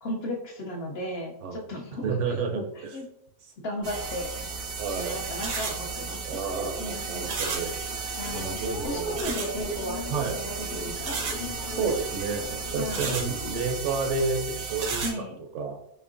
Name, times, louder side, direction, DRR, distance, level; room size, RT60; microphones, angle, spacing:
voice 1, 0.0-2.1 2.6-2.7 2.9-3.1 3.6-4.5 5.1-6.2 6.8-7.3 8.2-10.0 10.3-11.2 12.8-13.1 15.0-15.4, left 1 dB, 60° left, 0 dB, 0.7 m, -35 dB
voice 2, 2.0-3.0 4.8-5.2 6.3-7.8 8.3-9.2 10.1-10.7 11.7-15.3 15.5-15.8, right 4 dB, 70° right, 4 dB, 0.8 m, -30 dB
sound 1, 3.8-13.7, left 3 dB, 90° left, 0.4 m, -41 dB
sound 2, 3.8-15.1, right 4 dB, 85° right, 1.1 m, -34 dB
4.3 x 2.7 x 2.5 m, 0.75 s
omnidirectional pair, 1.4 m